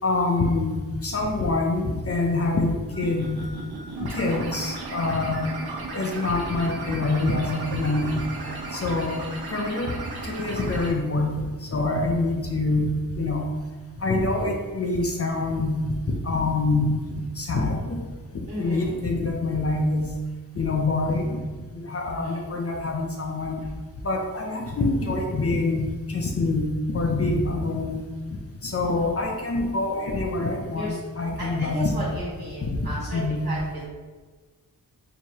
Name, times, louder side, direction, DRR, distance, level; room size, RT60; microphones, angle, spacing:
voice 1, 0.0-3.5 4.0-5.4 5.9-8.2 8.7-9.2 9.5-13.5 14.0-15.9 16.2-17.0 17.4-18.0 18.6-20.1 20.6-21.4 21.7-23.6 24.0-28.0 28.6-31.9 32.7-32.9 33.1-33.4, left 2 dB, 40° left, 1 dB, 0.5 m, -25 dB
sound 1, 2.9-10.9, right 3 dB, 75° right, 0.7 m, -35 dB
voice 2, 8.4-8.9 18.5-19.0 22.1-22.6 30.7-31.0 31.4-33.9, equal, 25° right, -9 dB, 1.4 m, -34 dB
4.6 x 2.8 x 2.8 m, 1.4 s
wide cardioid pair, 95°, 38 cm